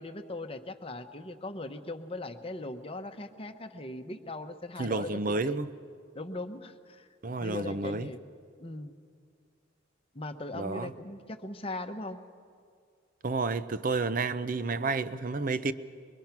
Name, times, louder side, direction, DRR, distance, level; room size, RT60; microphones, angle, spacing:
voice 1, 0.0-5.6 6.1-7.1 7.4-8.3 8.6-9.0 10.1-12.2, left 2 dB, 30° left, 1.0 m, -39 dB
voice 2, 4.8-5.7 7.2-8.1 10.5-10.9 13.2-15.7, right 3 dB, 45° right, 0.6 m, -30 dB
23.5 x 22.5 x 5.9 m
head